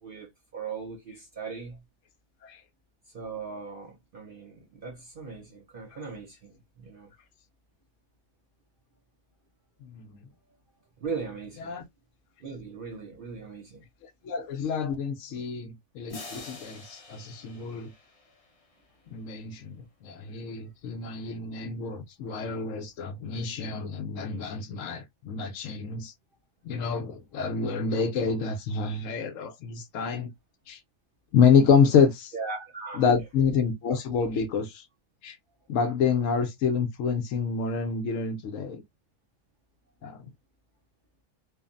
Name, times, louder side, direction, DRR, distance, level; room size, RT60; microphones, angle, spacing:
voice 1, 0.0-1.8 3.1-7.1 11.0-11.8 12.4-13.9 15.3-15.5 32.3-33.1, right 5 dB, 65° right, 0.5 m, -39 dB
voice 2, 9.8-10.2 11.6-11.8 14.2-17.9 19.1-26.1 26.6-30.3 30.7-30.8 31.3-32.3 33.0-34.8 35.2-35.4 35.7-38.8 40.0-40.3, left 6 dB, 65° left, 0.9 m, -27 dB
sound 1, 16.1-18.9, left 3 dB, 40° left, 0.5 m, -46 dB
3.1 x 2.0 x 2.4 m
omnidirectional pair, 1.6 m